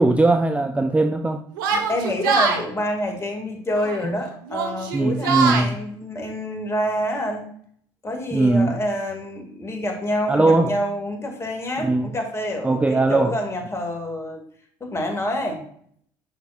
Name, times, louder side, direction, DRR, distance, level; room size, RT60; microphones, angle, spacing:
voice 1, 0.0-1.4 4.0-4.2 4.9-5.8 8.3-8.7 10.3-10.8 11.8-12.1 12.6-13.4, right 2 dB, 10° right, 7 dB, 0.5 m, -19 dB
Yell, 1.6-2.6 3.7-4.1 4.4-5.7, right 5 dB, 85° right, 1.0 m, -23 dB
voice 2, 1.7-7.5 8.0-14.4 14.8-15.6, left 1 dB, 25° left, 2 dB, 2.2 m, -27 dB
8.3 x 5.9 x 2.5 m, 0.62 s
hypercardioid pair, 70°, 11 cm